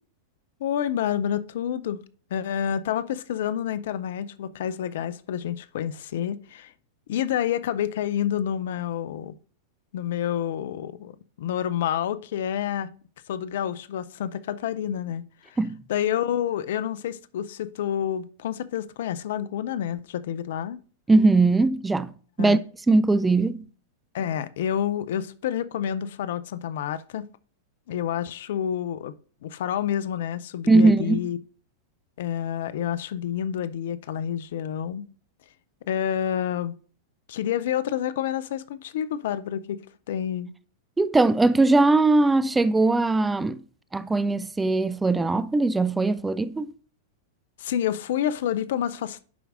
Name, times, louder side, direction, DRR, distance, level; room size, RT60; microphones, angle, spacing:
voice 1, 0.6-2.0 2.3-6.7 7.1-9.3 9.9-12.9 13.3-15.6 15.9-20.8 22.4-22.6 24.1-27.2 27.9-29.1 29.4-31.4 32.2-35.0 35.9-36.7 37.3-39.8 40.1-40.5 47.6-49.2, left 10 dB, 60° left, 0.5 m, -28 dB
voice 2, 21.1-22.1 22.4-22.6 22.9-23.6 30.7-31.2 41.0-43.6 43.9-46.7, right 3 dB, 10° right, 0.4 m, -20 dB
11.0 x 4.6 x 2.5 m
figure-of-eight pair, 100°, 0 cm